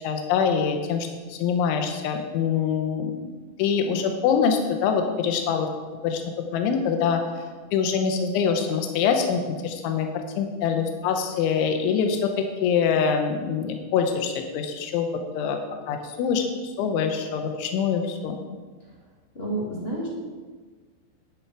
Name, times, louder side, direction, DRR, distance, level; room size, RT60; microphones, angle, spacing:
voice 1, 0.0-3.3 3.6-5.7 6.0-6.2 6.5-7.2 7.7-15.1 15.3-15.6 15.9-18.4, left 6 dB, 90° left, 5 dB, 3.4 m, -24 dB
voice 2, 19.3-20.1, right 1 dB, 20° left, -5 dB, 1.9 m, -29 dB
11.5 x 11.0 x 4.7 m, 1.4 s
omnidirectional pair, 5.3 m